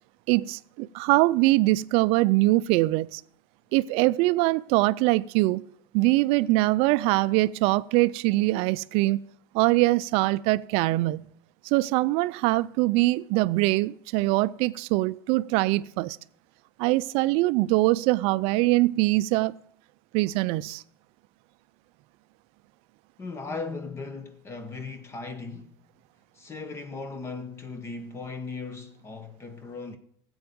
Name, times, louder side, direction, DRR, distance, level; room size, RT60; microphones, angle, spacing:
voice 1, 0.3-3.2 3.7-5.6 5.9-9.2 9.5-11.3 11.6-16.2 16.8-19.5 20.1-20.8, right 19 dB, 60° right, 0.4 m, -23 dB
voice 2, 23.2-25.9 26.3-30.0, left 4 dB, 25° left, 1.0 m, -37 dB
15.0 x 8.0 x 5.2 m
supercardioid pair, 125°, 11 cm